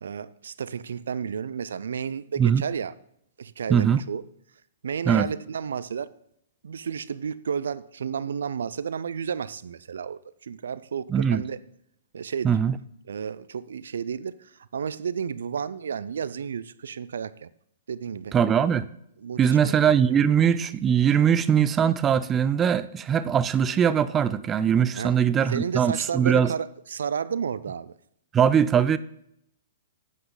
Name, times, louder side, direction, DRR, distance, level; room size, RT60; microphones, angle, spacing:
voice 1, 0.0-2.9 3.4-4.2 4.8-6.1 6.6-11.6 12.1-12.6 13.1-17.5 17.9-18.4 19.2-20.0 25.0-25.1 25.5-27.9, right 7 dB, 75° right, 0.5 m, -32 dB
voice 2, 3.7-4.0 5.1-5.3 11.1-11.4 12.4-12.8 18.3-18.9 19.4-26.5 28.3-29.0, right 8 dB, 20° right, 0.4 m, -21 dB
10.5 x 8.6 x 3.9 m
hypercardioid pair, 130°, 0 cm